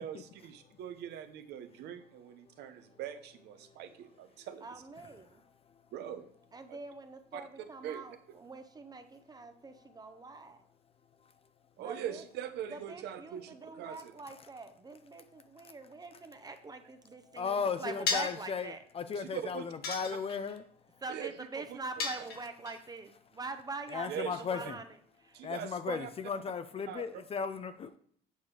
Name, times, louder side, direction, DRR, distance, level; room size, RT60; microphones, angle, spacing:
voice 1, 0.0-4.8 5.9-6.3 7.3-7.4 7.8-8.4 11.8-14.2 19.1-19.7 21.1-21.8 22.2-22.3 24.0-24.4 25.3-26.1 26.9-27.0, right 9 dB, 80° right, 0.9 m, -42 dB
voice 2, 4.6-5.4 6.5-10.6 11.8-12.2 12.7-18.8 21.0-24.8 25.2-25.4, right 3 dB, 25° right, 0.7 m, -44 dB
voice 3, 17.3-20.6 23.9-24.8 25.4-27.9, left 6 dB, 35° left, 0.5 m, -36 dB
sound 1, 18.1-18.5 19.8-20.6 22.0-22.7, left 5 dB, 70° left, 1.7 m, -34 dB
8.2 x 4.8 x 4.8 m
cardioid pair, 110°, 17 cm